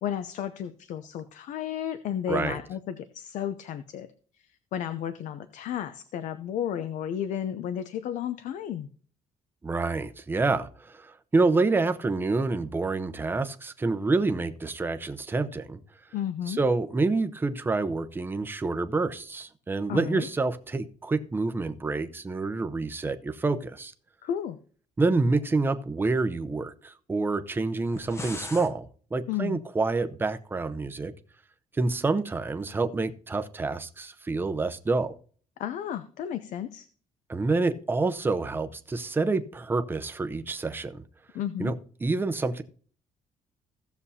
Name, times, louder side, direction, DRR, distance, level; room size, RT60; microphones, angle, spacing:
voice 1, 0.0-4.1 4.4-8.9 16.1-16.6 19.9-20.3 24.2-24.6 29.3-29.6 35.6-36.9 41.3-41.7, left 9 dB, 75° left, 0.6 m, -33 dB
voice 2, 2.3-2.6 9.6-15.8 16.5-23.9 25.0-31.1 31.8-35.1 37.3-41.0 41.6-41.7 42.0-42.6, right 3 dB, 15° right, 0.7 m, -27 dB
sound 1, 27.8-28.7, left 2 dB, 20° left, 0.8 m, -38 dB
16.0 x 7.0 x 2.8 m
cardioid pair, 145°, 13 cm